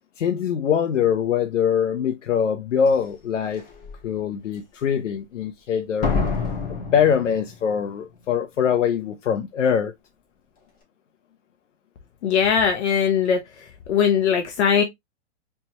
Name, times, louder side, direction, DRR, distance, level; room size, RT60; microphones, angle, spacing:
voice 1, 0.2-3.6 4.0-6.2 6.7-9.9, left 7 dB, 90° left, 0.8 m, -23 dB
Slam, 2.9-3.0 3.6-3.9 6.0-7.9 8.2-8.3, left 4 dB, 25° left, 2.2 m, -27 dB
voice 2, 12.2-14.8, left 7 dB, 65° left, 1.1 m, -20 dB
4.4 x 3.4 x 2.9 m
hypercardioid pair, 140°, 36 cm